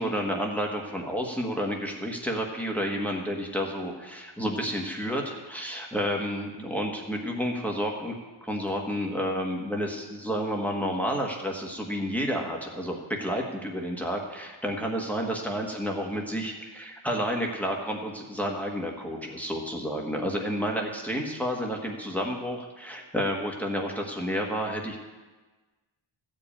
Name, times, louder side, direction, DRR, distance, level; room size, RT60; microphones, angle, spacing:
voice 1, 0.0-8.2 8.4-25.0, equal, 5° left, 0 dB, 1.5 m, -30 dB
14.5 x 5.2 x 8.7 m, 1.3 s
wide cardioid pair, 125°, 48 cm